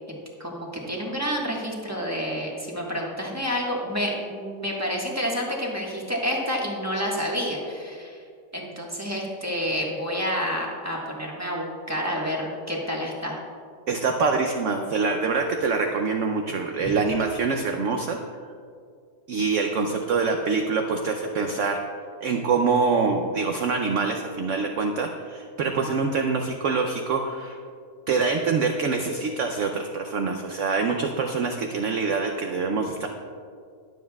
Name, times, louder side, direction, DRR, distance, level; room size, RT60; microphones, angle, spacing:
voice 1, 0.4-8.2 8.5-13.4 16.8-16.9, equal, 10° right, -3 dB, 1.2 m, -29 dB
voice 2, 13.9-18.2 19.3-21.8 22.2-27.6 28.1-33.1, right 4 dB, 65° right, 4 dB, 0.8 m, -25 dB
20.0 x 7.5 x 2.3 m, 2.2 s
omnidirectional pair, 1.8 m